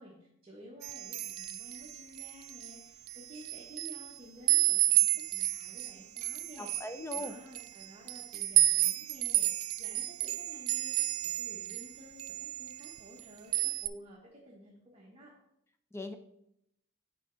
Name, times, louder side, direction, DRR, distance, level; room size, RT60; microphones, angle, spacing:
voice 1, 0.0-6.7 7.1-9.5 9.8-15.3, equal, 30° right, -4 dB, 1.1 m, -53 dB
sound 1, 0.8-2.7 3.1-4.1 4.5-11.9 12.2-13.2 13.5-13.9, right 14 dB, 85° right, 0.3 m, -31 dB
voice 2, 6.6-7.4 15.9-16.2, left 1 dB, 15° left, 7 dB, 0.4 m, -39 dB
7.3 x 4.6 x 3.8 m, 0.77 s
head